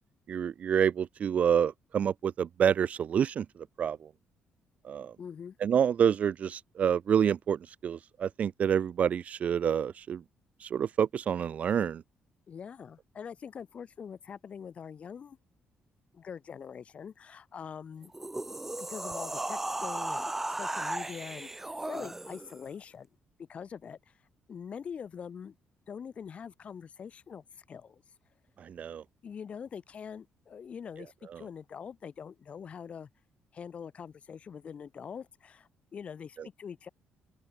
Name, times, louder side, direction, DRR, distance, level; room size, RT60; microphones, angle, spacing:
voice 1, 0.3-3.5 3.8-4.1 4.8-5.1 5.6-10.2 10.6-12.0 28.6-29.0 31.3-31.4, right 8 dB, 40° right, 0.8 m, -28 dB
voice 2, 5.2-5.6 12.5-15.4 16.1-18.1 18.8-23.1 23.5-24.1 24.5-25.6 25.9-28.0 29.2-33.1 33.5-36.9, left 7 dB, 35° left, 5.2 m, -44 dB
sound 1, 18.0-22.6, right 2 dB, 10° right, 0.5 m, -36 dB
open air
cardioid pair, 175°, 4 cm